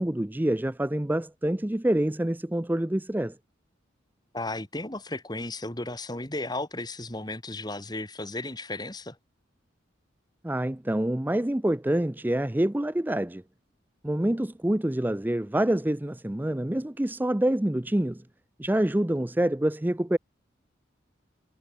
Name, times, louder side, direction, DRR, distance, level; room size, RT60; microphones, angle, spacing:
voice 1, 0.0-3.4 10.4-13.4 14.0-18.2 18.6-20.2, right 1 dB, 10° right, 0.5 m, -26 dB
voice 2, 4.3-9.2, left 2 dB, 20° left, 3.0 m, -34 dB
head